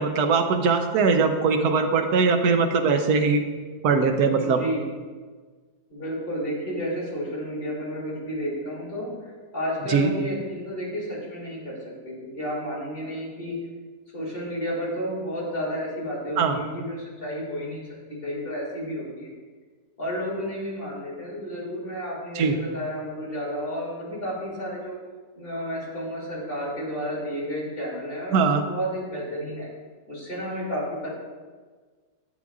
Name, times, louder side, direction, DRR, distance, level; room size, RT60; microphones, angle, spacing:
voice 1, 0.0-3.4 3.8-4.6 9.9-10.1 16.4-16.6 22.3-22.6 28.3-28.6, right 5 dB, 65° right, 5 dB, 1.1 m, -21 dB
voice 2, 4.4-4.8 5.9-11.8 12.0-13.6 14.1-19.3 20.0-25.0 25.4-29.7 30.1-31.1, equal, 30° left, -6 dB, 2.8 m, -31 dB
11.0 x 7.5 x 2.4 m, 1.4 s
omnidirectional pair, 2.0 m